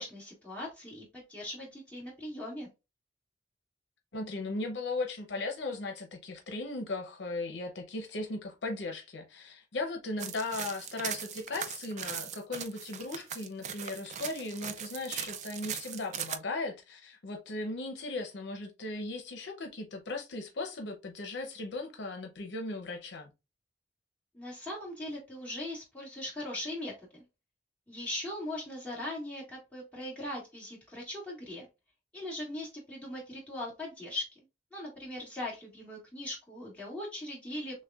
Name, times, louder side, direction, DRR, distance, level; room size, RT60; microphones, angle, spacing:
voice 1, 0.0-2.7 24.3-27.2 27.9-31.6 32.1-34.4 34.7-37.8, left 1 dB, 10° left, 1.4 m, -40 dB
voice 2, 4.1-23.3, left 2 dB, 85° left, 0.6 m, -37 dB
sound 1, 10.2-16.4, right 8 dB, 40° right, 0.3 m, -39 dB
6.3 x 2.1 x 2.3 m
head